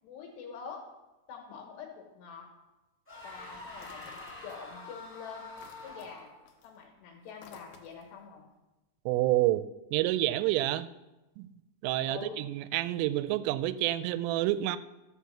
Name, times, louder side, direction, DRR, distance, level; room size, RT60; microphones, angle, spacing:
voice 1, 0.0-0.9 1.3-2.5 3.2-4.1 4.4-5.5 5.8-6.3 6.6-8.4 12.1-12.4, left 6 dB, 65° left, 1 dB, 3.3 m, -45 dB
sound 1, 3.1-6.4, left 2 dB, 5° left, 3.0 m, -46 dB
sound 2, 3.7-5.0 5.3-8.2, left 6 dB, 85° left, 2.0 m, -55 dB
voice 2, 9.1-9.6 9.9-10.9 11.4-11.5 11.8-14.8, right 15 dB, 90° right, 14 dB, 3.2 m, -28 dB
13.0 x 5.9 x 7.1 m, 1.0 s
omnidirectional pair, 5.7 m